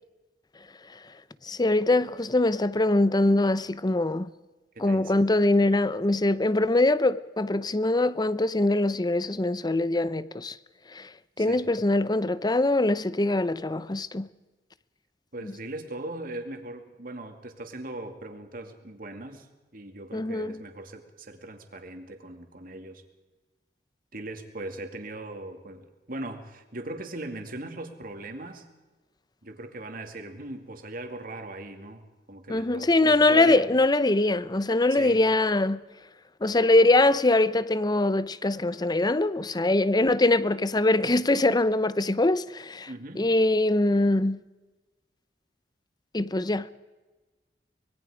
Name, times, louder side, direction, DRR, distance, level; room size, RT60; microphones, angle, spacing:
voice 1, 1.4-4.3 4.8-10.6 10.9-11.1 11.4-14.3 15.4-15.5 20.1-20.6 32.5-35.8 36.4-42.9 43.2-44.4 46.1-46.7, left 2 dB, 25° left, 0.7 m, -23 dB
voice 2, 4.7-5.1 11.4-11.7 15.3-19.5 19.7-23.0 24.1-28.6 29.4-33.7 34.9-35.2 42.9-43.3, right 2 dB, 55° right, 2.5 m, -39 dB
25.0 x 21.5 x 5.0 m
head